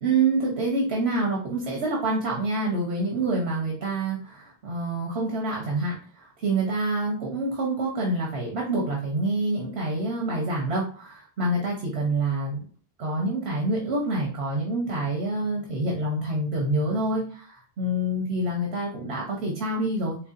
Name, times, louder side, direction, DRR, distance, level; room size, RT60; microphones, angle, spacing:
voice 1, 0.0-12.6 13.0-20.2, right 2 dB, 90° right, -1 dB, 1.3 m, -27 dB
4.5 x 3.2 x 2.6 m, 0.43 s
omnidirectional pair, 1.1 m